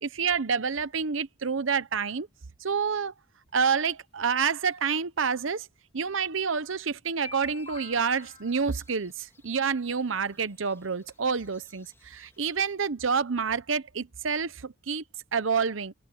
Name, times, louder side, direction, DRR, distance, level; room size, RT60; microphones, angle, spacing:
voice 1, 0.0-2.3 2.6-3.1 3.5-5.7 5.9-15.0 15.3-15.9, right 6 dB, 75° right, 0.9 m, -28 dB
sound 1, 4.8-4.9 6.0-6.1 6.7-6.8 7.1-9.1 10.2-10.3 10.7-10.8 11.1-11.5 11.8-11.9 12.1-12.2 12.5-12.6, left 3 dB, 30° left, 3.9 m, -47 dB
sound 2, 7.4-12.7, left 2 dB, 15° left, 3.8 m, -63 dB
head